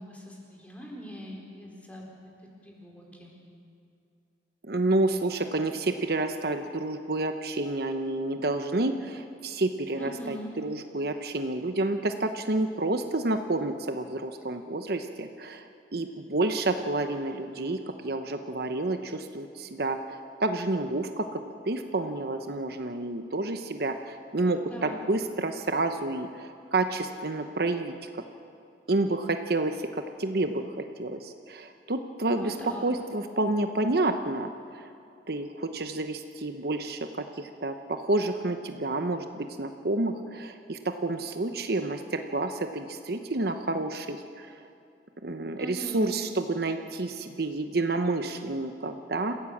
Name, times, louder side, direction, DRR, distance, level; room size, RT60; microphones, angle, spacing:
voice 1, 0.0-2.1 2.4-3.4 10.0-10.5 24.6-25.0 32.3-32.9 45.6-46.1, equal, 10° left, -2 dB, 4.1 m, -42 dB
voice 2, 4.6-15.6 15.9-17.8 18.0-27.9 28.9-32.5 32.8-34.5 34.7-34.8 35.3-37.1 37.4-44.5 45.2-49.3, right 2 dB, 60° right, 7 dB, 0.9 m, -29 dB
28.0 x 15.5 x 7.3 m, 2.5 s
head